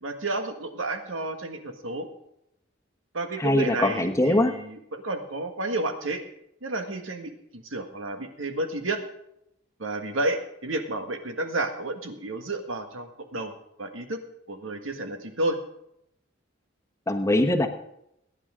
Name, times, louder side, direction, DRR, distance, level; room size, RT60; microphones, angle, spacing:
voice 1, 0.0-2.1 3.1-6.2 6.6-9.0 9.8-13.5 13.8-14.2 14.5-15.6, right 2 dB, 90° right, 6 dB, 1.7 m, -31 dB
voice 2, 3.4-4.5 17.1-17.7, left 1 dB, 15° left, 4 dB, 1.1 m, -22 dB
21.5 x 9.9 x 3.7 m, 0.79 s
head